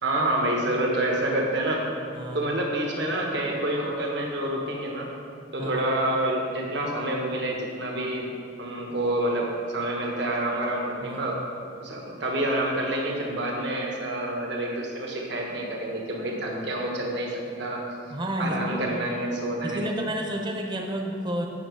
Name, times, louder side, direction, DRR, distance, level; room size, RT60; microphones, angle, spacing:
voice 1, 0.0-1.8 2.3-5.1 5.5-8.3 8.6-11.4 11.8-17.8 18.4-19.9, right 1 dB, 65° right, -1 dB, 1.3 m, -28 dB
voice 2, 2.1-2.5 5.6-5.8 11.0-11.3 18.1-18.8 19.6-21.5, right 1 dB, 25° right, 3 dB, 0.8 m, -31 dB
9.0 x 6.1 x 4.6 m, 2.4 s
head